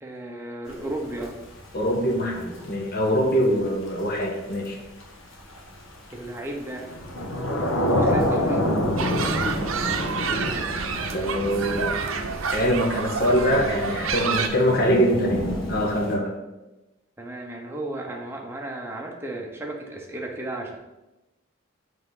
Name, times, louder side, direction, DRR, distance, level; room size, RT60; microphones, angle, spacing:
voice 1, 0.0-1.3 6.1-6.9 8.0-8.6 17.2-20.8, right 1 dB, 10° right, 0 dB, 0.8 m, -34 dB
Thunder / Rain, 0.7-16.1, left 1 dB, 70° left, 1.3 m, -29 dB
voice 2, 1.7-4.8 11.1-11.8 12.5-16.3, equal, 45° left, 0 dB, 1.1 m, -23 dB
sound 1, 9.0-14.5, right 5 dB, 75° right, 0.6 m, -28 dB
5.7 x 3.9 x 5.5 m, 1.0 s
head